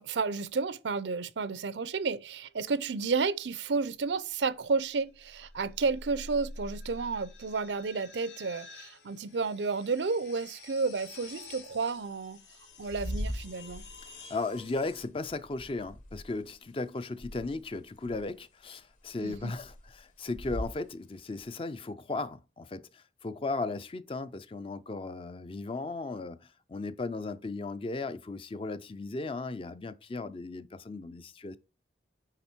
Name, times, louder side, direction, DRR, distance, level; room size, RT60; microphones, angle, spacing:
voice 1, 0.0-12.4 12.8-13.8 19.2-19.5, right 4 dB, 85° right, 0.6 m, -31 dB
sound 1, 2.4-2.8 5.0-15.0, left 2 dB, 80° left, 2.5 m, -49 dB
sound 2, 12.7-16.9 17.1-18.5 18.8-20.8 21.4-21.5, equal, 45° left, 1.3 m, -40 dB
voice 2, 14.0-31.6, left 3 dB, 30° left, 0.4 m, -36 dB
9.9 x 3.4 x 4.4 m
head